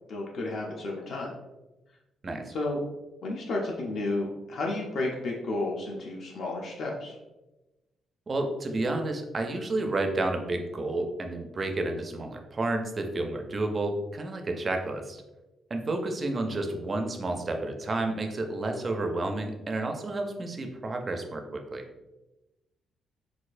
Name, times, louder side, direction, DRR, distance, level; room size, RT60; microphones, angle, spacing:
voice 1, 0.1-1.3 2.5-2.8 3.2-7.2, left 2 dB, 55° left, -2 dB, 0.5 m, -32 dB
voice 2, 8.3-15.2 15.7-21.8, right 2 dB, 25° right, 4 dB, 0.4 m, -31 dB
4.1 x 2.3 x 2.4 m, 1.0 s
cardioid pair, 165°, 0 cm